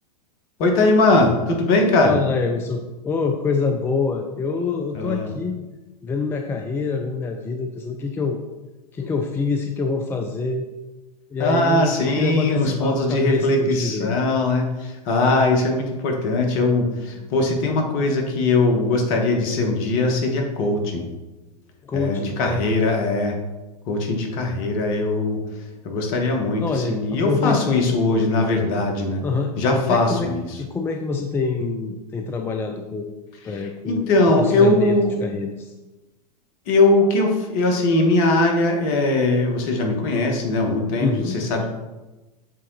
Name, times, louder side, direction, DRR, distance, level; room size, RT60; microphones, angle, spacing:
voice 1, 0.6-2.2 4.9-5.3 11.4-21.1 21.9-23.4 23.9-25.4 25.8-29.2 29.6-30.5 33.5-35.2 36.7-41.1 41.3-41.7, left 2 dB, 45° left, 3 dB, 1.4 m, -20 dB
voice 2, 2.0-5.6 6.0-8.4 8.9-10.6 11.3-14.1 17.2-17.3 21.8-22.6 26.6-28.0 29.2-29.5 29.9-30.3 30.6-33.2 33.4-34.1 34.4-35.7 41.0-41.4, left 4 dB, 10° left, 4 dB, 0.4 m, -26 dB
7.4 x 3.7 x 3.9 m, 1.1 s
figure-of-eight pair, 100°, 21 cm